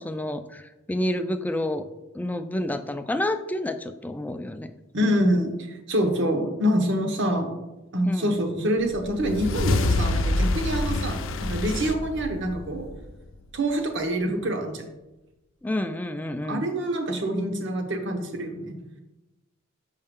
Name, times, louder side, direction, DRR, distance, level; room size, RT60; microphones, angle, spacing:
voice 1, 0.0-1.8 2.1-4.7 8.0-8.4 15.6-16.6, left 1 dB, 10° left, 9 dB, 0.3 m, -29 dB
voice 2, 4.9-7.5 7.9-12.9 13.5-14.8 16.4-18.7, equal, 60° right, 5 dB, 1.0 m, -26 dB
sound 1, 8.9-13.5, left 2 dB, 65° left, 0.6 m, -27 dB
6.9 x 5.4 x 3.7 m, 1.0 s
head